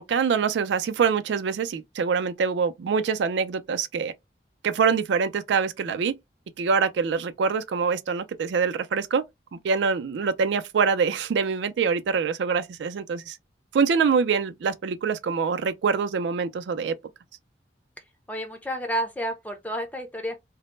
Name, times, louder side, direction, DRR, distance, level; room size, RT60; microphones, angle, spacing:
voice 1, 0.0-4.1 4.6-6.2 6.6-9.2 9.5-13.4 13.7-17.0, right 5 dB, 85° right, 0.3 m, -25 dB
voice 2, 18.3-20.4, right 1 dB, 10° left, 0.4 m, -30 dB
2.0 x 2.0 x 3.0 m
head